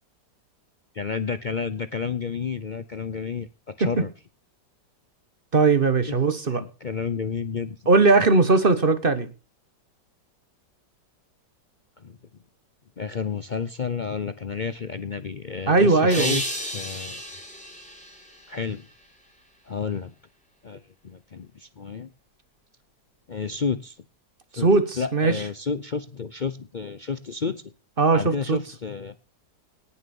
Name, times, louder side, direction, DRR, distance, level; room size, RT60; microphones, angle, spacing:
voice 1, 0.9-4.1 6.1-6.2 6.5-7.8 12.0-12.2 13.0-16.4 16.7-17.2 18.5-18.9 19.7-20.1 20.6-22.1 23.3-24.0 24.6-24.7 25.0-27.6 28.1-29.2, left 5 dB, 60° left, 0.4 m, -31 dB
voice 2, 5.5-6.6 7.9-9.3 15.7-16.4 24.5-25.4 28.0-28.6, right 3 dB, 35° right, 1.1 m, -19 dB
sound 1, 16.1-19.2, equal, 5° left, 3.8 m, -33 dB
18.5 x 7.1 x 7.0 m
omnidirectional pair, 1.9 m